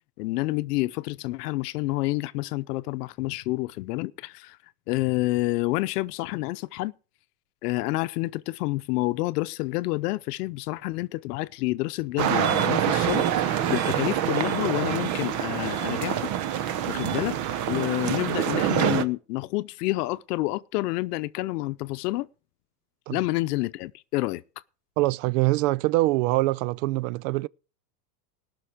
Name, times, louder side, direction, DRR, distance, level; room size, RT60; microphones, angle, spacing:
voice 1, 0.2-4.6 4.9-6.9 7.6-16.3 16.9-17.4 17.7-22.3 23.1-24.4, left 20 dB, 70° left, 0.8 m, -28 dB
sound 1, 12.2-19.0, right 10 dB, 40° right, 0.9 m, -26 dB
voice 2, 25.0-27.5, right 20 dB, 55° right, 0.5 m, -24 dB
18.5 x 6.2 x 5.0 m
supercardioid pair, 135°, 48 cm